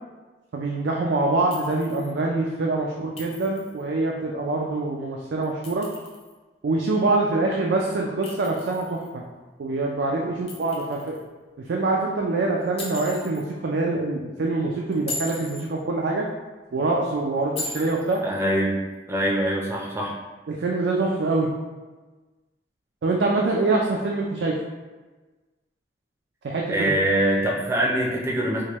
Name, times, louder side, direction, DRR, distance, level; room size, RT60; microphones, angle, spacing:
voice 1, 0.5-5.9 6.6-9.2 9.6-11.2 11.7-16.3 16.7-18.2 20.5-21.5 23.0-24.5 26.4-26.9, right 2 dB, 70° right, -1 dB, 0.4 m, -25 dB
Chink clink, 1.5-2.1 3.2-3.8 5.4-6.3 8.2-9.1 10.5-11.2 12.8-13.5 14.9-15.7 17.6-18.2, left 2 dB, 35° left, 0.6 m, -37 dB
voice 2, 18.2-18.7 19.1-20.1 26.7-28.6, right 1 dB, 15° right, -2 dB, 0.5 m, -23 dB
4.6 x 2.2 x 2.9 m, 1.3 s
head